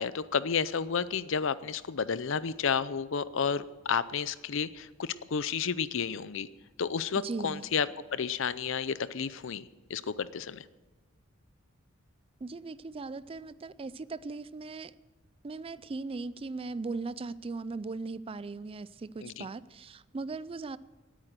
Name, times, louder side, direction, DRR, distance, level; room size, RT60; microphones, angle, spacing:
voice 1, 0.0-6.5 6.8-10.6 19.2-19.5, left 6 dB, 65° left, 16 dB, 0.6 m, -31 dB
voice 2, 7.2-7.6 12.4-14.9 15.4-20.8, right 3 dB, 25° right, 17 dB, 0.4 m, -38 dB
18.5 x 8.9 x 6.7 m, 1.2 s
head